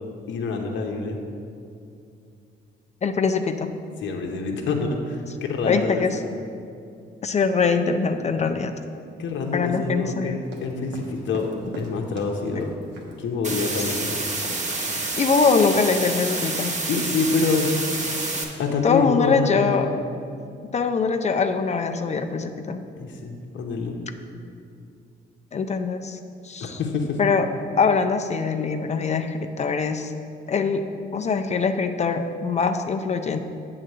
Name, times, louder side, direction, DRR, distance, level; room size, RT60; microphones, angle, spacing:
voice 1, 0.3-1.2 4.0-6.2 9.2-11.5 11.8-12.7 13.2-14.2 16.9-17.7 18.6-19.9 23.0-24.0 26.6-27.2, left 4 dB, 70° left, 1 dB, 0.9 m, -26 dB
voice 2, 3.0-3.7 5.7-6.2 7.2-8.7 9.5-10.4 13.8-13.9 15.2-16.7 18.8-19.9 20.7-22.8 25.5-26.2 26.4-26.8 27.2-27.5 27.8-30.1 30.5-30.9 31.1-33.4, left 5 dB, 35° left, 7 dB, 0.4 m, -23 dB
sound 1, 10.4-13.1 13.5-13.7 14.0-14.2 14.4-14.7 14.9-15.5, right 2 dB, 65° right, 1.2 m, -40 dB
sound 2, 13.4-18.4, right 2 dB, 35° right, 1.1 m, -28 dB
7.7 x 3.9 x 6.5 m, 2.5 s
cardioid pair, 90°, 20 cm